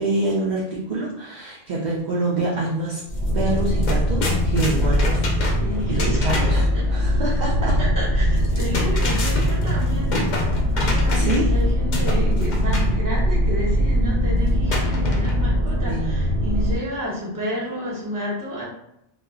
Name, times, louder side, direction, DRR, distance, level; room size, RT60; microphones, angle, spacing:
voice 1, 0.0-3.0 3.3-5.3 5.9-7.8 11.1-11.5 15.9-16.2, right 2 dB, 55° right, -4 dB, 0.6 m, -26 dB
sound 1, 3.1-16.8, equal, 80° right, 0.9 m, -21 dB
sound 2, 3.2-3.3 3.6-6.7 8.4-11.6 11.9-12.9 14.7-15.6, left 1 dB, 55° left, 0.6 m, -28 dB
voice 2, 5.6-6.8 7.8-18.6, equal, 20° right, -7 dB, 0.9 m, -30 dB
2.2 x 2.1 x 3.6 m, 0.81 s
omnidirectional pair, 1.0 m